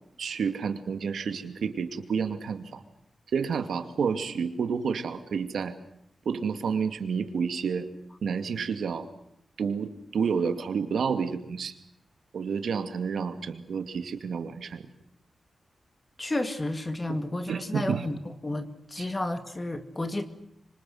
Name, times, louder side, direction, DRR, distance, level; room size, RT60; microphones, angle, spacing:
voice 1, 0.2-2.8 3.3-5.7 6.3-7.9 8.2-9.1 9.6-11.7 12.3-14.9 17.5-18.1 19.0-19.1, right 6 dB, 80° right, 8 dB, 2.4 m, -30 dB
voice 2, 16.2-18.2 18.4-20.3, left 2 dB, 20° left, 9 dB, 2.2 m, -31 dB
26.0 x 25.5 x 7.9 m, 0.76 s
wide cardioid pair, 140°, 0 cm